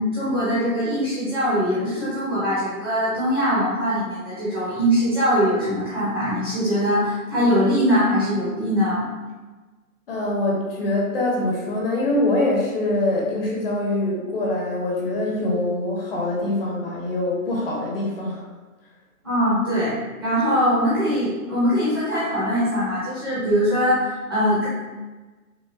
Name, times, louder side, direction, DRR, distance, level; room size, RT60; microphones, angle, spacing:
voice 1, 0.0-9.1 19.2-19.9 20.2-24.7, equal, 15° right, -12 dB, 0.6 m, -22 dB
voice 2, 10.1-18.4, left 1 dB, 40° left, -3 dB, 0.8 m, -24 dB
5.0 x 2.1 x 2.3 m, 1.3 s
hypercardioid pair, 170°, 44 cm